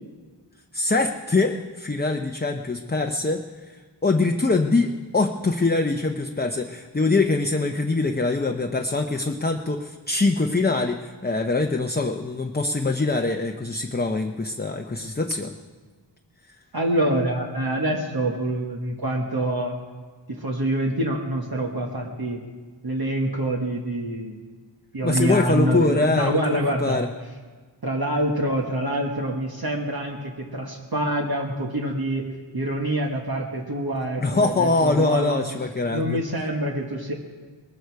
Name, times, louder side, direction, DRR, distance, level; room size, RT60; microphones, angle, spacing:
voice 1, 0.7-15.5 25.0-27.1 34.2-36.2, left 3 dB, 20° left, 4 dB, 0.7 m, -23 dB
voice 2, 16.7-19.8 20.3-22.4 22.8-24.4 24.9-27.1 27.8-32.2 32.5-35.4 35.9-37.1, right 1 dB, 55° right, 0 dB, 1.5 m, -26 dB
20.5 x 13.5 x 4.7 m, 1.4 s
wide cardioid pair, 55°, 44 cm